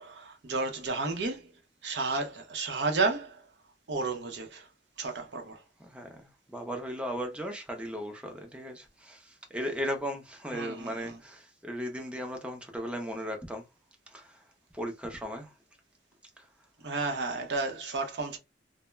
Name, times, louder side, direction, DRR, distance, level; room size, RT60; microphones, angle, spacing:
voice 1, 0.0-1.5 1.8-3.4 3.9-4.7 5.0-5.6 10.5-11.2 16.8-18.4, right 3 dB, 70° right, 0.6 m, -32 dB
voice 2, 5.9-6.2 6.5-13.6 14.1-14.4 14.7-15.5, equal, 5° right, 0.4 m, -36 dB
2.2 x 2.0 x 3.1 m
head